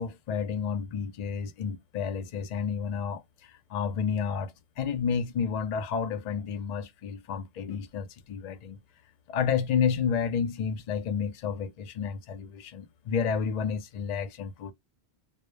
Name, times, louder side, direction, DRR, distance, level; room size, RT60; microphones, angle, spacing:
voice 1, 0.0-3.2 3.7-8.8 9.3-14.7, left 6 dB, 55° left, 0.4 m, -30 dB
2.1 x 2.0 x 3.1 m
omnidirectional pair, 1.1 m